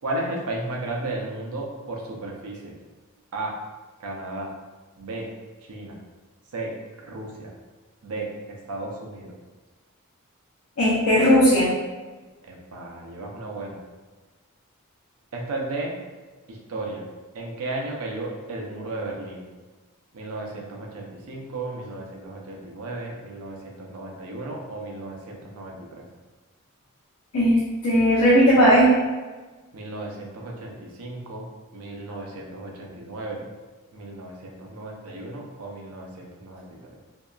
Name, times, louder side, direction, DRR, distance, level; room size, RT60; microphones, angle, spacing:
voice 1, 0.0-2.7 3.3-3.5 4.0-4.5 5.0-5.3 5.7-6.0 6.5-6.7 7.0-7.5 8.0-9.3 12.5-13.8 15.3-15.9 16.5-17.0 17.3-19.4 20.1-26.1 29.7-31.5 31.7-33.5 33.9-37.0, right 2 dB, 75° right, 0 dB, 0.5 m, -34 dB
voice 2, 10.8-11.7 27.3-28.9, equal, 80° left, -7 dB, 0.6 m, -17 dB
2.7 x 2.2 x 2.3 m, 1.3 s
head